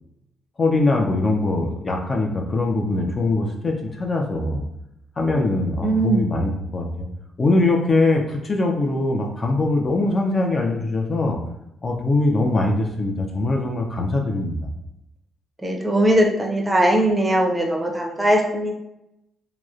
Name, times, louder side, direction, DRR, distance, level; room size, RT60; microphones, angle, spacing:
voice 1, 0.6-4.6 5.2-7.1 7.4-11.4 11.8-14.7, left 2 dB, 35° left, 1 dB, 0.4 m, -22 dB
voice 2, 5.8-6.3 15.6-18.7, right 1 dB, 15° right, 0 dB, 0.5 m, -20 dB
2.9 x 2.0 x 2.3 m, 0.84 s
cardioid pair, 90°, 0 cm